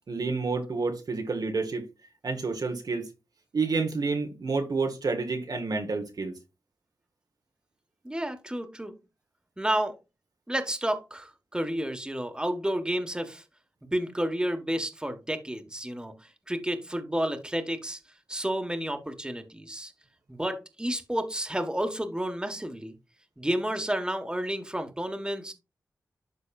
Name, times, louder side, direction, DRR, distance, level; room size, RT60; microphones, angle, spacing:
voice 1, 0.1-1.9 2.2-3.0 3.5-6.3, right 4 dB, 65° right, 1.2 m, -29 dB
voice 2, 8.0-8.9 9.6-9.9 10.5-13.4 13.9-18.0 18.3-19.9 20.3-22.9 23.4-25.5, right 1 dB, 10° right, 1.5 m, -31 dB
12.0 x 4.0 x 2.5 m
cardioid pair, 40°, 7 cm